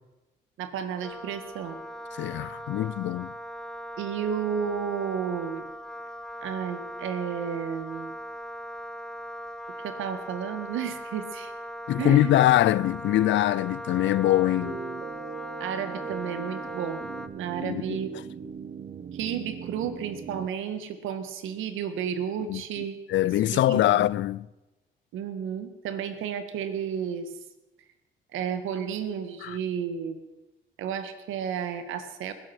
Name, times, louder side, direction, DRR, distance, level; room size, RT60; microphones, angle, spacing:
voice 1, 0.6-1.8 4.0-5.7 6.4-8.2 9.8-11.5 12.0-12.3 15.6-17.0 17.3-18.1 19.1-23.0 23.4-24.0 25.1-27.3 28.3-30.2 30.8-32.3, right 8 dB, 90° right, 1.8 m, -32 dB
Wind instrument woodwind instrument, 1.0-17.3, equal, 5° left, 0.9 m, -39 dB
voice 2, 2.2-3.3 11.9-14.8 17.6-18.0 22.5-22.6 23.1-24.4 29.4-29.5, left 14 dB, 70° left, 0.5 m, -23 dB
sound 1, 14.6-20.5, right 6 dB, 40° right, 0.8 m, -39 dB
20.5 x 11.0 x 6.1 m
cardioid pair, 90°, 20 cm